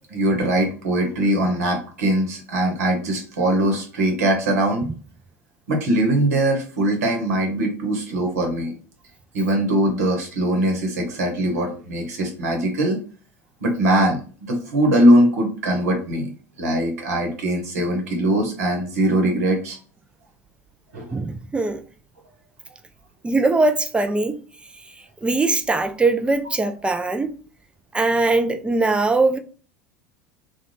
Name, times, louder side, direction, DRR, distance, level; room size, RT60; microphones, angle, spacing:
voice 1, 0.1-4.9 5.7-8.7 9.3-13.0 13.6-16.3 16.6-19.8 20.9-21.2, right 1 dB, 75° right, 0.9 m, -21 dB
voice 2, 21.1-21.8 23.2-24.4 25.2-27.3 27.9-29.4, right 3 dB, 15° right, 0.3 m, -21 dB
2.4 x 2.2 x 3.2 m
hypercardioid pair, 80°, 8 cm